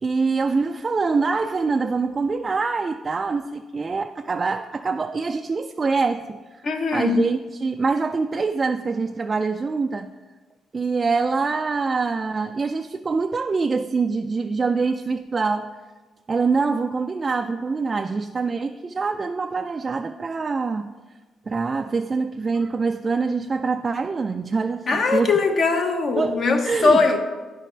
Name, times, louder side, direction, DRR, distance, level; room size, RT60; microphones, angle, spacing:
voice 1, 0.0-10.1 10.7-15.7 16.3-20.9 21.5-25.3 26.2-27.0, right 4 dB, 35° right, 6 dB, 0.3 m, -25 dB
voice 2, 6.6-7.3 24.9-27.2, left 4 dB, 55° left, 4 dB, 1.0 m, -20 dB
9.8 x 5.1 x 4.4 m, 1.3 s
cardioid pair, 90°, 0 cm